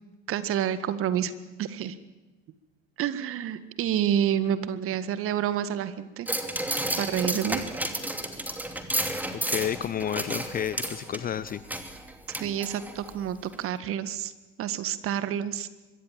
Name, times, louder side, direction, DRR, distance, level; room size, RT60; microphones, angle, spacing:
voice 1, 0.3-2.0 3.0-6.3 7.0-7.6 12.4-14.3 14.6-15.7, right 10 dB, 35° right, 13 dB, 1.8 m, -28 dB
sound 1, 6.3-13.1 13.5-13.6, right 1 dB, 5° right, 2.7 m, -32 dB
voice 2, 9.5-11.6, left 9 dB, 25° left, 17 dB, 0.8 m, -30 dB
25.0 x 23.0 x 7.6 m, 1.2 s
figure-of-eight pair, 80°, 36 cm